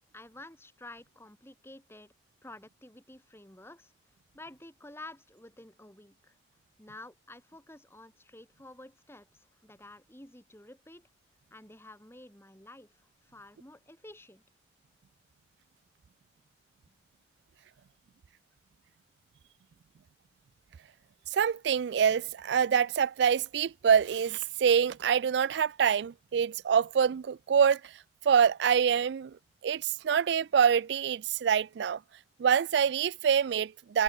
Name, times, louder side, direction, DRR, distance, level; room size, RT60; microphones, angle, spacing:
voice 1, 0.1-2.1 2.4-3.9 4.3-6.4 6.8-11.1 11.5-14.4 16.9-17.0, left 2 dB, 15° left, 6.9 m, -50 dB
voice 2, 21.3-27.9 28.2-29.4 29.6-32.0 32.4-34.0, right 7 dB, 70° right, 0.3 m, -25 dB
head